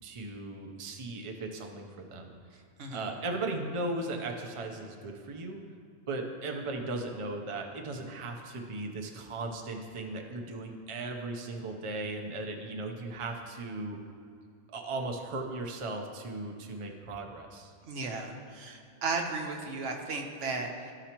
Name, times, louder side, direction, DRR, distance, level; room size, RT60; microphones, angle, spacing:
voice 1, 0.0-2.3 2.9-5.6 6.1-14.0 14.7-17.7, right 2 dB, 35° right, 2 dB, 0.5 m, -37 dB
voice 2, 2.8-3.1 17.9-20.9, right 3 dB, 75° right, 2 dB, 1.2 m, -35 dB
13.5 x 4.9 x 2.9 m, 2.3 s
omnidirectional pair, 1.3 m